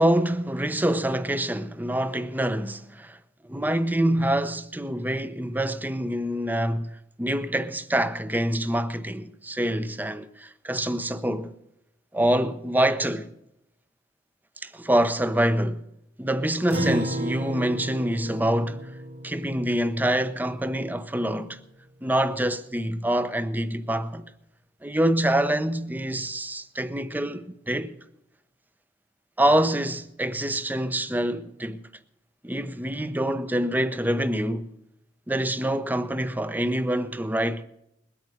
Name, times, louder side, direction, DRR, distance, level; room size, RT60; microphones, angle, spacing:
voice 1, 0.0-3.2 3.5-6.9 7.2-11.5 12.1-13.3 14.6-15.8 16.2-18.8 19.2-21.6 22.0-24.3 24.8-28.0 29.4-31.8 32.4-34.7 35.3-37.6, right 1 dB, 10° right, 0.7 m, -26 dB
Acoustic guitar, 16.7-21.4, right 1 dB, 90° right, 3.3 m, -34 dB
21.0 x 8.6 x 6.5 m
head